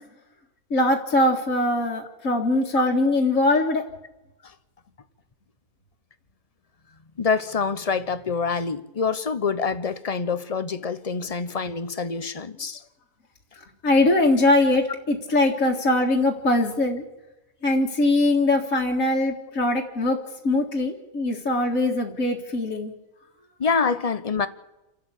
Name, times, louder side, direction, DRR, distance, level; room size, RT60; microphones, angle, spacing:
voice 1, 0.7-3.8 13.8-17.0 17.6-20.2 20.4-22.9, left 2 dB, 55° left, 2.2 m, -21 dB
voice 2, 7.2-12.8 23.6-24.5, left 5 dB, 30° left, 0.8 m, -26 dB
28.5 x 12.0 x 8.4 m
omnidirectional pair, 1.7 m